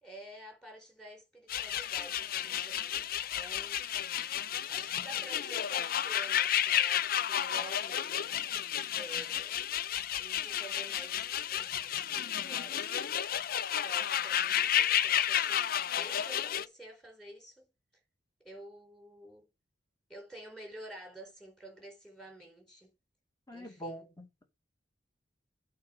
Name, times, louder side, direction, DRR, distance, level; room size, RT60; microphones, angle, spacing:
voice 1, 0.0-3.8 4.7-8.4 8.9-9.6 10.2-13.1 13.8-17.7 18.4-19.5 20.1-22.9 23.5-24.1, right 1 dB, 5° left, 4.0 m, -50 dB
sound 1, 1.5-16.7, left 10 dB, 50° left, 0.5 m, -32 dB
voice 2, 23.5-24.5, equal, 20° left, 2.3 m, -44 dB
8.6 x 4.0 x 6.8 m
head